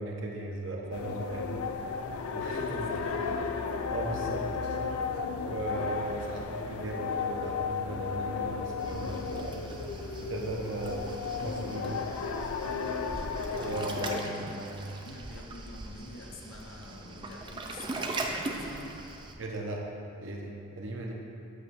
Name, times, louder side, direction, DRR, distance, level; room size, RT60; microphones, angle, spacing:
voice 1, 0.0-1.9 2.3-2.9 3.9-4.5 5.3-9.6 10.2-12.0 13.4-15.0 19.4-19.9 20.2-21.1, right 2 dB, 60° right, -1 dB, 0.9 m, -37 dB
sound 1, 0.9-14.2, left 5 dB, 85° left, 0.4 m, -34 dB
voice 2, 2.5-3.4 15.0-18.9, left 2 dB, 65° left, 0 dB, 0.8 m, -47 dB
Waves surf, 8.8-19.3, right 2 dB, 20° right, 0.4 m, -40 dB
8.0 x 3.1 x 6.2 m, 2.7 s
head